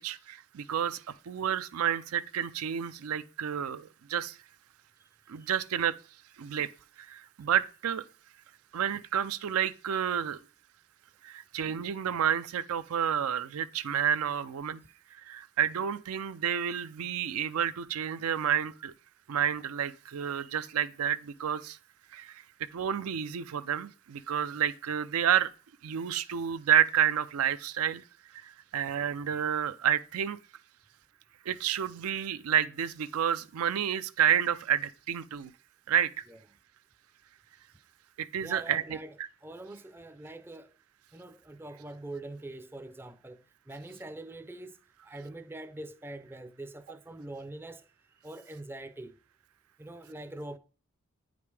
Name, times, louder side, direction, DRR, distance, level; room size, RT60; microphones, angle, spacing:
voice 1, 0.0-4.4 5.3-6.0 6.4-6.7 7.1-8.0 8.7-10.4 11.2-14.8 15.1-18.9 19.3-21.8 22.1-22.4 22.7-25.5 25.8-28.0 28.3-30.4 31.5-35.5 35.9-36.1 38.2-39.0, right 9 dB, 90° right, 0.4 m, -30 dB
voice 2, 38.4-40.8 41.1-44.8 45.0-47.9 48.2-49.2 49.8-50.6, right 1 dB, 10° right, 0.4 m, -44 dB
8.6 x 5.1 x 3.3 m
head